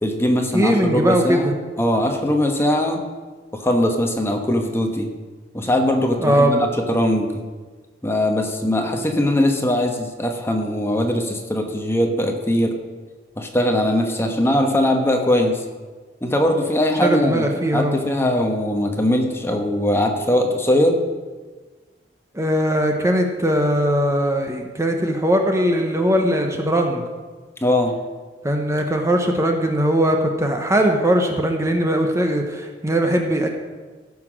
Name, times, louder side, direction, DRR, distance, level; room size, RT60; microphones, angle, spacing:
voice 1, 0.0-1.5 1.8-3.0 3.5-5.1 5.5-7.4 8.0-12.7 13.4-15.6 16.2-21.0 27.6-27.9, left 1 dB, 15° left, 3 dB, 1.1 m, -20 dB
voice 2, 0.5-1.5 6.2-6.5 16.9-18.0 22.3-27.0 28.4-33.5, equal, 15° right, 3 dB, 0.9 m, -20 dB
14.5 x 5.9 x 6.2 m, 1.4 s
head